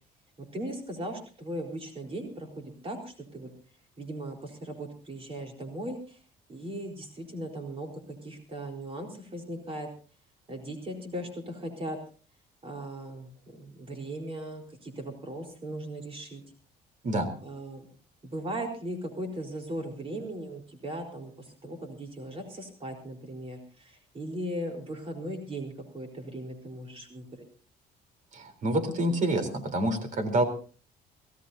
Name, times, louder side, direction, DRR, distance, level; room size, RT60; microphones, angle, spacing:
voice 1, 0.4-3.5 4.0-6.2 6.5-9.9 10.5-12.0 12.6-16.4 17.4-17.9 18.2-27.3, right 1 dB, 35° right, 3 dB, 4.2 m, -38 dB
voice 2, 28.3-30.4, right 1 dB, 50° right, 9 dB, 3.7 m, -27 dB
24.5 x 16.5 x 2.7 m, 0.39 s
cardioid pair, 110°, 17 cm